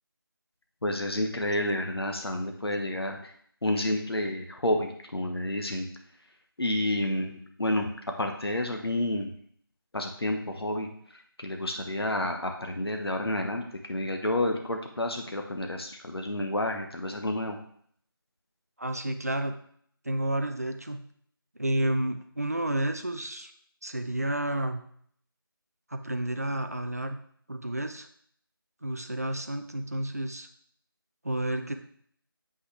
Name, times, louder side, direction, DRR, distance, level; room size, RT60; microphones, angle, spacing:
voice 1, 0.8-3.3 3.6-5.9 6.6-7.9 8.2-9.3 9.9-17.6, left 1 dB, 90° left, 3 dB, 1.1 m, -30 dB
voice 2, 18.8-19.5 20.0-21.0 21.6-23.5 23.8-24.8 25.9-27.2 27.5-28.1 28.8-30.5 31.2-31.7, right 1 dB, 40° right, 6 dB, 0.6 m, -30 dB
8.0 x 5.7 x 3.3 m, 0.62 s
figure-of-eight pair, 180°, 13 cm